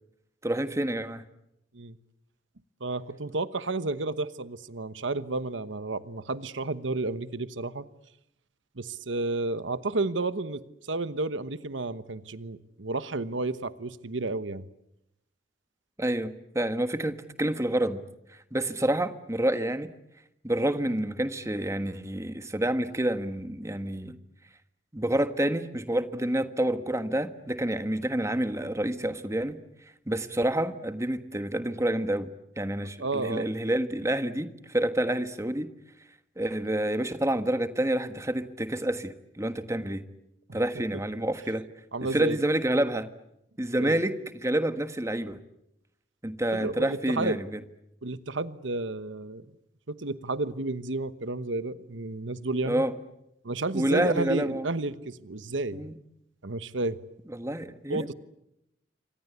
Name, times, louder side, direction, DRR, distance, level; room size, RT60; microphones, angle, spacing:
voice 1, 0.4-1.2 16.0-18.0 18.5-19.9 20.4-24.2 24.9-29.6 30.1-32.3 32.6-35.7 36.4-40.0 40.5-41.7 42.1-43.1 43.6-45.4 46.2-47.5 52.7-52.9 53.7-54.6 55.7-55.9 57.3-58.1, right 1 dB, 15° right, 10 dB, 1.5 m, -28 dB
voice 2, 2.8-7.9 8.8-10.6 10.9-14.7 33.0-33.5 41.9-42.4 43.8-44.0 46.5-47.4 48.0-49.4 49.9-52.8 53.4-55.8 56.4-57.0 57.9-58.1, right 2 dB, 90° right, 14 dB, 1.2 m, -31 dB
28.0 x 25.0 x 8.2 m, 0.83 s
head